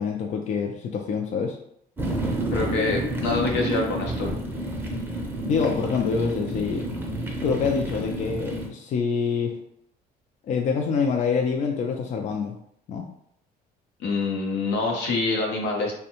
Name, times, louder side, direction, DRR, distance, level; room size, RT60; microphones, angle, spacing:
voice 1, 0.0-1.6 5.5-6.9 7.4-9.6 10.5-12.6 12.9-13.1, left 5 dB, 45° left, 3 dB, 0.4 m, -26 dB
sound 1, 2.0-8.7, right 1 dB, 10° right, 0.6 m, -29 dB
voice 2, 2.5-4.3 14.0-16.0, left 3 dB, 85° left, 0 dB, 0.8 m, -26 dB
2.6 x 2.2 x 2.8 m, 0.69 s
cardioid pair, 110°, 17 cm